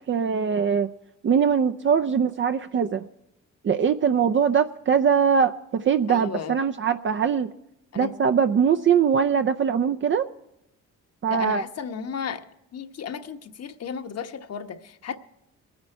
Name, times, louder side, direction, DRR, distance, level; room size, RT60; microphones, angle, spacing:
voice 1, 0.1-0.9 1.2-3.1 3.6-7.5 8.0-10.3 11.2-11.6, right 7 dB, 40° right, 0.6 m, -22 dB
voice 2, 6.1-6.6 7.9-8.1 11.3-12.4 12.7-15.2, left 7 dB, 55° left, 1.2 m, -34 dB
22.0 x 9.6 x 4.5 m
cardioid pair, 90°, 30 cm